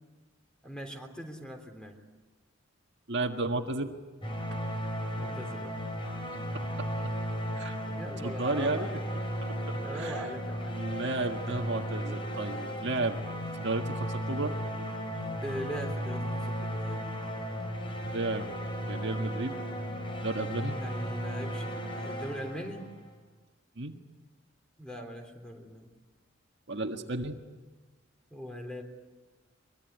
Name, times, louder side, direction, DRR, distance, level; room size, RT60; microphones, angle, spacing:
voice 1, 0.6-2.0 5.2-5.8 7.8-9.0 9.8-10.8 15.4-17.0 20.7-22.9 24.8-25.9 28.3-28.8, equal, 5° left, 4 dB, 3.5 m, -40 dB
voice 2, 3.1-4.0 7.6-7.8 8.2-9.0 9.7-10.3 10.7-13.2 13.5-14.6 18.0-18.6 18.9-19.6 20.2-20.8 23.8-23.9 26.7-27.4, right 2 dB, 60° right, 4 dB, 1.7 m, -33 dB
sound 1, 4.2-23.1, equal, 25° left, 4.8 m, -35 dB
23.5 x 23.0 x 9.5 m, 1.3 s
head